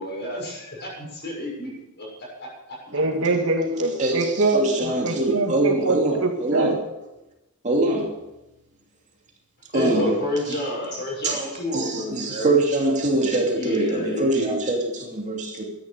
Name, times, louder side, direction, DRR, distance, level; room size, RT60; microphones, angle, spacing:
voice 1, 0.0-1.7 2.0-2.8 9.7-12.6 13.5-14.5, left 1 dB, 50° left, -2 dB, 6.9 m, -29 dB
voice 2, 2.9-5.9 6.2-6.7, right 2 dB, 65° right, 3 dB, 2.1 m, -24 dB
voice 3, 4.0-6.8 7.6-8.1 9.7-10.1 11.2-11.4 11.7-15.6, right 2 dB, 35° right, 0 dB, 2.8 m, -23 dB
13.5 x 10.5 x 6.7 m, 0.95 s
head